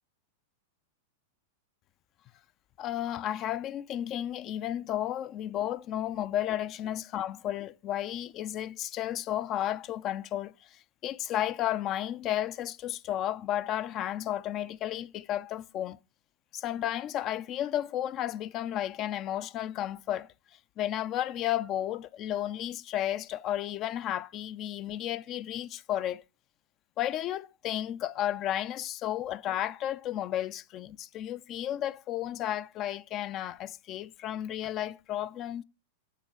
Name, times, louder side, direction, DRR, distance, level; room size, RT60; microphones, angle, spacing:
voice 1, 2.8-16.0 16.5-20.3 20.8-26.2 27.0-35.6, left 12 dB, 40° left, 0.3 m, -33 dB
7.5 x 3.7 x 6.5 m
hypercardioid pair, 105°, 0 cm